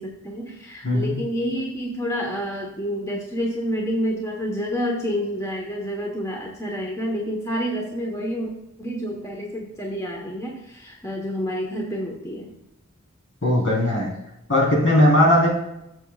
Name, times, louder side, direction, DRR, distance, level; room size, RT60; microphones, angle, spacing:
voice 1, 0.0-8.5 8.8-12.5, equal, 15° left, -1 dB, 1.3 m, -28 dB
voice 2, 0.8-1.1 13.4-14.1 14.5-15.5, left 1 dB, 70° left, -2 dB, 3.9 m, -18 dB
14.5 x 7.2 x 2.5 m, 0.87 s
head